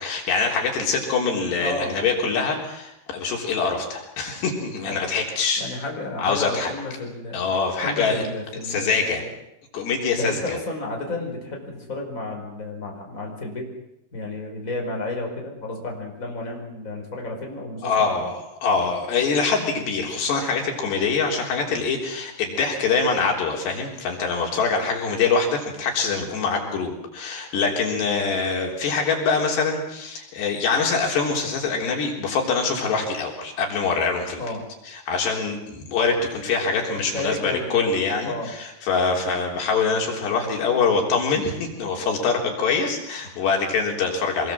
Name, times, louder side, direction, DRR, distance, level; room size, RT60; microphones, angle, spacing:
voice 1, 0.0-5.6 6.2-6.7 7.3-8.2 8.6-9.2 9.7-10.6 17.8-34.4 34.9-44.5, left 4 dB, 85° left, 1 dB, 5.7 m, -24 dB
voice 2, 1.6-2.0 4.8-5.1 5.6-7.4 7.8-9.3 10.2-13.7 14.1-18.3 34.4-34.7 36.9-37.9 38.2-38.5, left 2 dB, 20° left, 0 dB, 5.2 m, -32 dB
25.0 x 21.0 x 7.6 m, 0.84 s
omnidirectional pair, 4.7 m